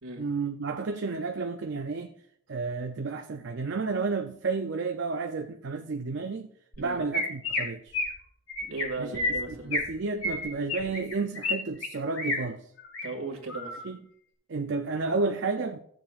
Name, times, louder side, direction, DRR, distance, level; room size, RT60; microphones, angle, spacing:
voice 1, 0.2-2.1 2.5-6.5 6.8-8.0 9.0-9.2 9.5-12.7 13.8-14.0 14.5-15.8, right 4 dB, 55° right, 0.5 m, -31 dB
Chirp tweet, 6.7-6.8 7.1-7.6 7.9-8.1 8.5-8.8 9.1-9.9 10.2-11.5 11.8-12.4 12.8-13.1 13.5-13.8, left 2 dB, 80° left, 3.9 m, -30 dB
voice 2, 8.6-9.7 13.0-13.8, right 3 dB, 75° right, 2.3 m, -37 dB
16.0 x 7.3 x 2.5 m
head